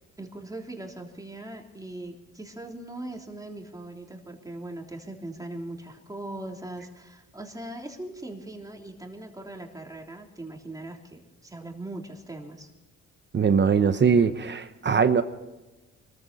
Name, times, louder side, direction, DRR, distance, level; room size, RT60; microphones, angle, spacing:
voice 1, 0.2-12.7, right 1 dB, 10° right, 1 dB, 3.5 m, -40 dB
voice 2, 13.3-15.2, right 6 dB, 35° right, 11 dB, 1.0 m, -21 dB
24.0 x 14.0 x 4.2 m, 1.1 s
cardioid pair, 90°, 30 cm